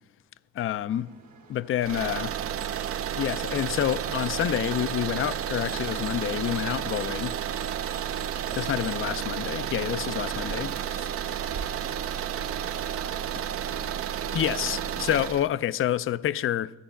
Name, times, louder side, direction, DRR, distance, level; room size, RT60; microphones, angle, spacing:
voice 1, 0.6-1.1 1.5-2.3 3.1-7.3 8.5-11.1 14.3-16.7, left 11 dB, 45° left, 0.4 m, -28 dB
sound 1, 0.9-15.1, right 6 dB, 70° right, 1.5 m, -53 dB
sound 2, 1.8-15.5, right 9 dB, 50° right, 0.5 m, -31 dB
sound 3, 2.6-9.1, right 4 dB, 25° right, 1.0 m, -48 dB
voice 2, 11.1-14.0, left 3 dB, 85° left, 2.0 m, -55 dB
12.5 x 9.1 x 5.7 m
cardioid pair, 90°, 30 cm